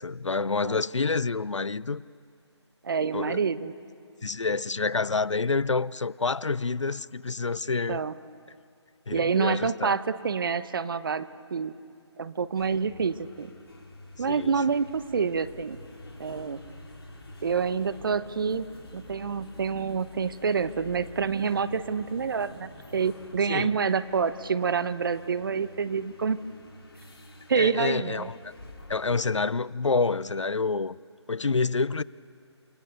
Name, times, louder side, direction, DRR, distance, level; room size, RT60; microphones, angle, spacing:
voice 1, 0.0-2.0 3.1-3.4 4.2-8.0 9.1-10.0 14.3-14.5 23.5-23.8 27.5-28.5 28.9-31.0 31.3-32.0, left 4 dB, 85° left, 0.6 m, -28 dB
voice 2, 2.8-3.7 7.9-8.1 9.1-11.7 12.2-13.5 14.2-15.8 16.2-16.6 17.4-18.7 18.9-26.4 27.5-28.3, right 5 dB, 50° right, 1.0 m, -27 dB
sound 1, 12.5-29.5, left 2 dB, 55° left, 4.2 m, -48 dB
28.5 x 22.5 x 6.8 m
figure-of-eight pair, 150°, 15 cm